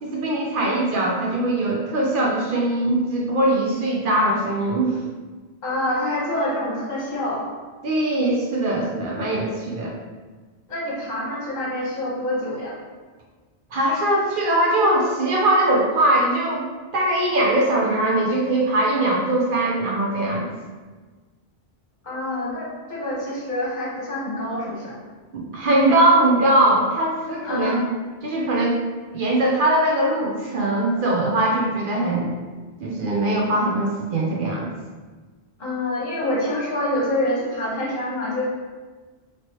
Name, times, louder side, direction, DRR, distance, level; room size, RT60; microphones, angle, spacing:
voice 1, 0.0-5.0 7.8-9.9 13.7-16.7 16.9-20.5 25.3-27.8 28.2-28.8 29.1-32.3 32.8-34.7, right 1 dB, 60° right, -3 dB, 0.7 m, -21 dB
voice 2, 5.6-7.5 10.7-12.7 22.0-25.0 27.4-27.8 35.6-38.4, left 1 dB, 45° left, -5 dB, 1.0 m, -26 dB
3.0 x 2.9 x 2.9 m, 1.4 s
omnidirectional pair, 1.1 m